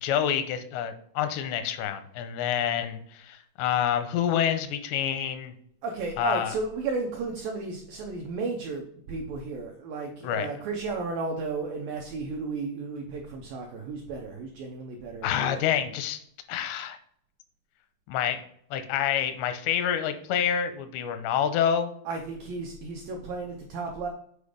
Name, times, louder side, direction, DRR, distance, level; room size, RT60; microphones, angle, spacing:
voice 1, 0.0-5.5 6.2-6.5 10.2-10.5 15.2-16.2 16.5-17.0 18.1-18.4 18.7-21.9, left 9 dB, 85° left, 9 dB, 2.8 m, -27 dB
voice 2, 5.8-8.8 9.1-15.8 22.1-24.1, right 3 dB, 85° right, 2 dB, 2.0 m, -33 dB
8.4 x 5.1 x 5.0 m, 0.66 s
omnidirectional pair, 5.2 m